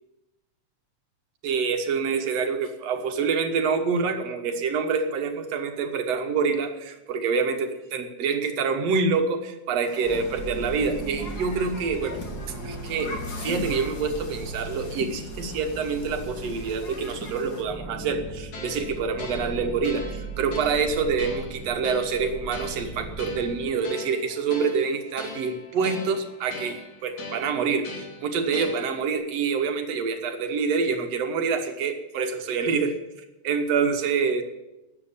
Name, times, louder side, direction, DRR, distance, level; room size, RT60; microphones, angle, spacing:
voice 1, 1.4-12.2 12.6-13.2 13.4-27.9 28.2-33.0 33.4-34.4, right 5 dB, 65° right, 6 dB, 2.2 m, -26 dB
Human group actions, 9.9-17.6, left 2 dB, 40° left, 1.9 m, -40 dB
sound 1, 10.0-23.7, right 2 dB, 10° right, 1.1 m, -38 dB
sound 2, 18.5-29.1, left 3 dB, 80° left, 3.7 m, -41 dB
13.0 x 9.1 x 7.1 m, 0.97 s
omnidirectional pair, 3.3 m